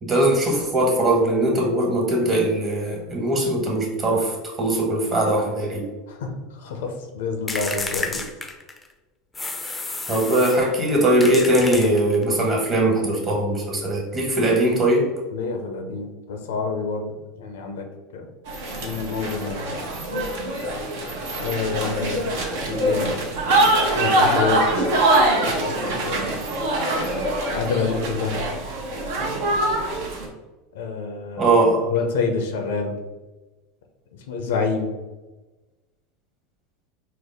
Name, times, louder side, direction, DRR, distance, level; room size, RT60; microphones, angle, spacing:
voice 1, 0.0-5.9 10.1-15.1 31.4-31.9, right 1 dB, 30° right, -1 dB, 1.3 m, -20 dB
voice 2, 6.1-8.2 15.3-17.8 18.1-18.3 18.8-19.8 21.4-22.3 22.7-23.1 24.0-24.9 25.4-25.8 26.0-26.5 27.5-28.4 30.7-31.5 31.9-32.9 34.3-34.9, left 5 dB, 75° left, 4 dB, 0.5 m, -27 dB
sound 1, 7.5-8.9 9.3-10.7 11.2-12.3, left 3 dB, 15° left, 0.5 m, -31 dB
sound 2, 18.5-30.3, right 1 dB, 65° right, 0.8 m, -23 dB
4.4 x 2.1 x 3.4 m, 1.2 s
hypercardioid pair, 85°, 0 cm